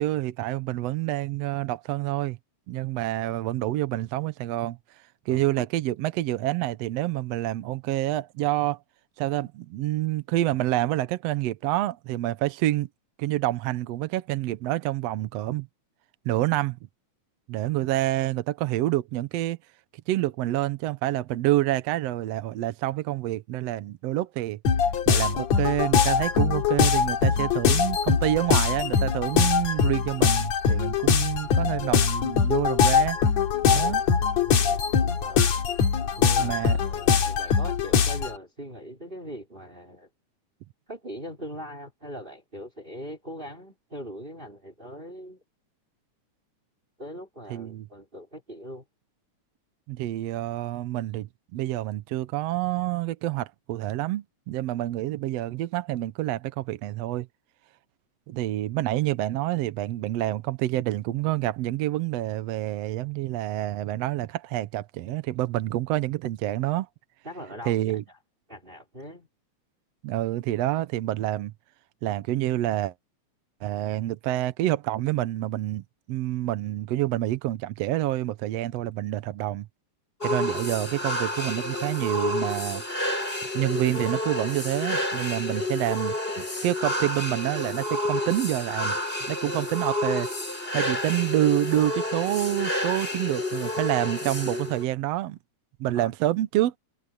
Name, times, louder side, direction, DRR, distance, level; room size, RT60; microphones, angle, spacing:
voice 1, 0.0-2.4 2.7-4.8 5.3-8.8 9.2-12.9 13.2-15.7 16.3-16.8 17.5-19.6 20.1-24.6 25.1-33.2 33.7-34.0 36.4-36.8 47.5-47.9 49.9-57.3 58.3-66.9 67.7-68.0 70.0-71.5 72.0-72.9 73.6-79.7 80.2-82.8 83.5-89.0 89.3-90.3 90.7-95.4 95.8-96.7, right 15 dB, 75° right, 1.7 m, -27 dB
sound 1, 24.7-38.4, left 6 dB, 70° left, 3.3 m, -22 dB
voice 2, 33.7-34.8 35.2-35.6 36.2-40.1 40.9-45.4 47.0-48.8 67.2-68.0 68.5-69.3 95.9-96.1, equal, 15° right, 4.0 m, -41 dB
sound 2, 80.2-94.8, left 1 dB, 20° left, 5.0 m, -30 dB
omnidirectional pair, 3.3 m